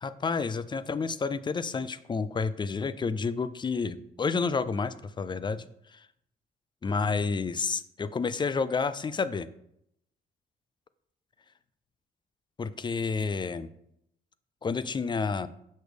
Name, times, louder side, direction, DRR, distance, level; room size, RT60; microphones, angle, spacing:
voice 1, 0.0-6.1 6.8-9.5 12.6-13.7 14.6-15.5, left 4 dB, 25° left, 15 dB, 0.4 m, -30 dB
6.3 x 6.1 x 3.4 m, 0.75 s
cardioid pair, 90°, 20 cm